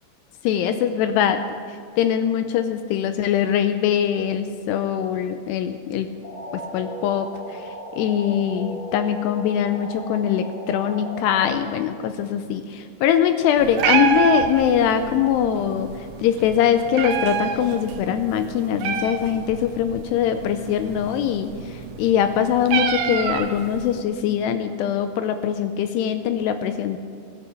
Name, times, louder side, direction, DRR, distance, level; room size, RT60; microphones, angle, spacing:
voice 1, 0.4-1.4 2.0-6.1 6.5-7.3 8.0-15.9 16.2-21.5 22.0-27.0, left 9 dB, 85° left, 9 dB, 2.6 m, -22 dB
sound 1, 6.2-11.5, left 1 dB, 25° left, 2.9 m, -36 dB
Meow, 13.6-24.0, right 8 dB, 75° right, 2.3 m, -28 dB
15.0 x 10.0 x 7.1 m, 2.2 s
omnidirectional pair, 5.1 m